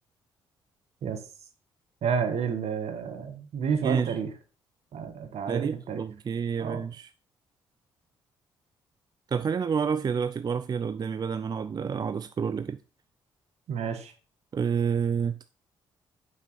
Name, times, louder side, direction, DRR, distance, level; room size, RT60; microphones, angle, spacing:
voice 1, 2.0-4.3 4.9-6.0 6.6-6.8 13.7-14.1, right 6 dB, 60° right, 1.3 m, -30 dB
voice 2, 3.8-4.2 5.5-7.1 9.3-12.8 14.5-15.4, right 6 dB, 35° right, 0.4 m, -29 dB
7.5 x 5.6 x 4.1 m
hypercardioid pair, 45°, 12 cm